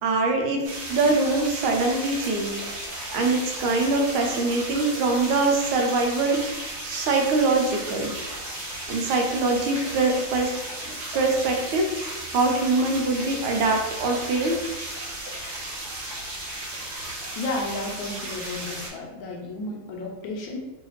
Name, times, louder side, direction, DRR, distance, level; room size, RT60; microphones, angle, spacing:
voice 1, 0.0-2.6 3.1-8.1 8.9-10.5 11.1-11.9 12.3-14.6, right 3 dB, 80° right, 2 dB, 1.5 m, -23 dB
sound 1, 0.6-18.9, right 1 dB, 55° right, 1.4 m, -35 dB
voice 2, 17.3-20.7, left 2 dB, 75° left, 0 dB, 1.3 m, -32 dB
3.1 x 3.1 x 3.1 m, 1.0 s
omnidirectional pair, 2.3 m